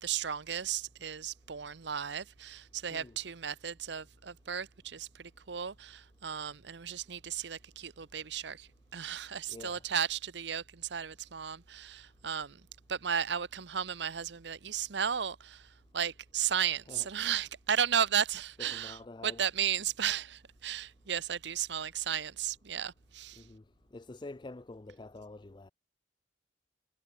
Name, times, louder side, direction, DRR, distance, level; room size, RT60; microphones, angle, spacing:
voice 1, 0.0-12.6 12.9-15.7 15.9-23.4, right 8 dB, 70° right, 0.8 m, -34 dB
voice 2, 9.5-9.8 16.9-17.1 18.6-19.4 23.4-23.6 23.9-25.7, left 2 dB, 25° left, 0.5 m, -47 dB
head